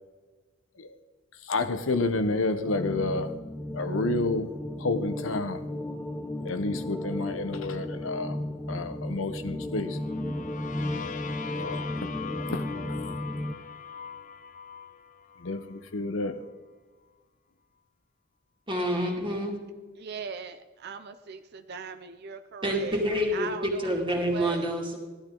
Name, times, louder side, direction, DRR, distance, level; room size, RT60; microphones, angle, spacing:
voice 1, 1.4-3.3 3.7-4.5 4.8-5.6 6.4-8.4 8.7-10.0 11.6-12.1 12.5-13.0 15.4-16.4, left 2 dB, 75° left, 9 dB, 0.9 m, -30 dB
sound 1, 2.6-13.5, left 1 dB, 10° left, 0.6 m, -34 dB
sound 2, 9.9-15.8, left 6 dB, 40° left, 0.9 m, -41 dB
voice 2, 18.7-19.6 22.6-25.0, equal, 25° right, 0 dB, 2.5 m, -28 dB
voice 3, 20.0-23.0 23.3-24.7, right 5 dB, 55° right, 9 dB, 0.6 m, -39 dB
16.5 x 12.0 x 3.9 m, 1.4 s
head